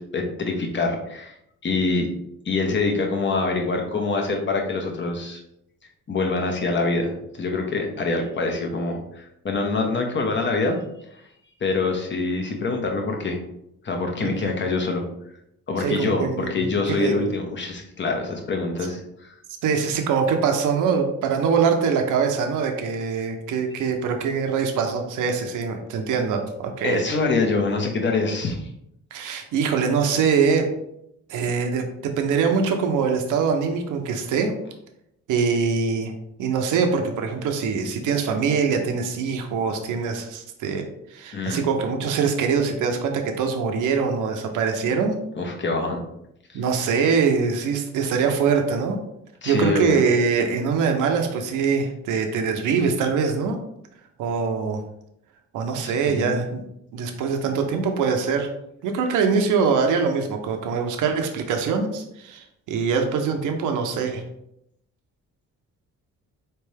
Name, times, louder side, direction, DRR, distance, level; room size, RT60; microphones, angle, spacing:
voice 1, 0.0-1.3 1.6-2.1 2.4-5.4 6.1-10.8 11.6-13.4 13.8-15.0 15.7-19.3 26.8-28.7 41.3-41.7 45.4-46.0 46.5-46.6 49.4-50.1 55.8-56.4, left 3 dB, 40° left, 2 dB, 1.1 m, -25 dB
voice 2, 14.2-14.5 15.8-17.3 19.6-27.0 29.1-30.7 31.3-34.5 35.3-36.1 36.4-40.9 41.1-45.2 46.5-49.0 49.5-53.6 54.2-54.8 55.5-56.6 56.9-58.5 58.8-64.2, right 5 dB, 85° right, 4 dB, 0.8 m, -23 dB
4.2 x 3.4 x 3.3 m, 0.79 s
cardioid pair, 90°, 30 cm